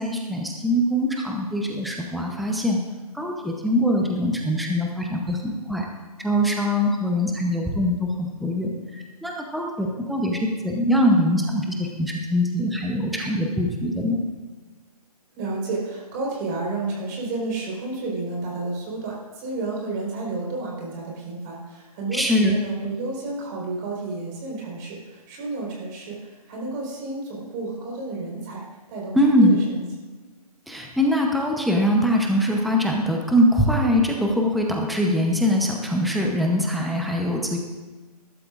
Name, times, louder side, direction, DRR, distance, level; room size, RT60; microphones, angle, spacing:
voice 1, 0.0-2.8 3.1-5.9 6.2-14.2 22.1-22.5 29.1-29.6 30.7-37.6, equal, ahead, 0 dB, 0.7 m, -22 dB
voice 2, 15.3-28.6 28.9-29.8, right 3 dB, 30° right, -3 dB, 4.3 m, -31 dB
20.0 x 12.5 x 2.5 m, 1.3 s
hypercardioid pair, 150°, 20 cm